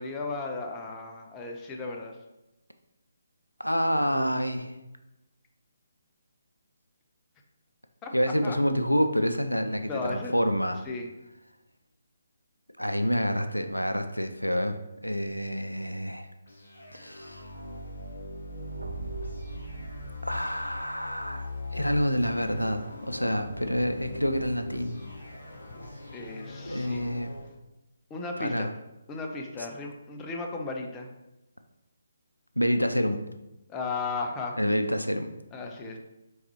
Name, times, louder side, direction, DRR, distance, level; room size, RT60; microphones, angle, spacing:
voice 1, 0.0-2.1 8.0-8.1 8.4-8.6 9.8-10.3 10.9-11.1 26.1-27.1 28.1-28.7 29.1-31.1 33.7-34.6 35.5-36.0, left 3 dB, 15° left, 2 dB, 0.5 m, -35 dB
voice 2, 3.6-4.7 8.1-10.9 12.8-14.8 15.0-16.3 16.9-17.4 20.2-25.0 26.7-27.4 28.4-28.7 32.6-33.2 34.6-35.3, equal, 90° left, 8 dB, 0.4 m, -28 dB
sound 1, 16.5-27.5, left 1 dB, 60° left, 1.3 m, -40 dB
sound 2, 18.5-22.4, right 3 dB, 70° right, 0.4 m, -44 dB
4.6 x 3.5 x 3.1 m, 0.94 s
figure-of-eight pair, 140°, 0 cm